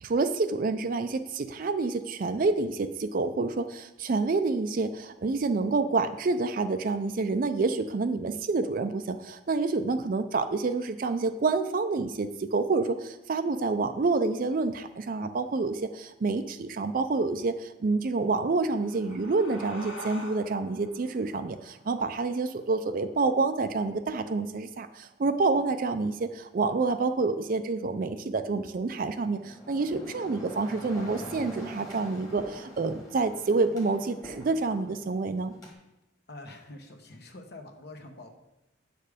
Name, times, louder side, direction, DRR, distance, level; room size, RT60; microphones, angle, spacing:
voice 1, 0.0-35.5, right 3 dB, 45° right, 9 dB, 0.4 m, -28 dB
sound 1, 18.4-23.6, equal, 80° left, 1.8 m, -46 dB
sound 2, 29.1-35.7, equal, 15° left, 1.5 m, -44 dB
voice 2, 36.3-38.3, left 2 dB, 55° left, 4 dB, 1.0 m, -45 dB
8.4 x 6.6 x 5.0 m, 0.95 s
head